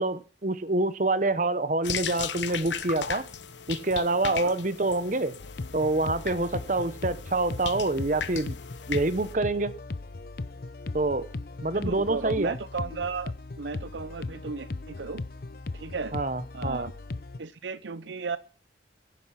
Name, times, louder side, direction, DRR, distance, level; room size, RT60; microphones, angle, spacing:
voice 1, 0.0-3.3 3.7-5.3 5.7-8.6 8.9-9.7 10.9-11.3 11.6-12.6 16.1-16.9, right 2 dB, 45° right, 0.9 m, -26 dB
sound 1, 1.8-9.3, left 7 dB, 80° left, 1.1 m, -37 dB
voice 2, 4.2-4.6 11.7-13.3 13.6-15.2 15.7-16.2 16.5-16.9 17.4-18.4, right 4 dB, 75° right, 0.7 m, -34 dB
sound 2, 5.4-17.4, left 3 dB, 50° left, 0.6 m, -38 dB
15.5 x 10.5 x 5.8 m
head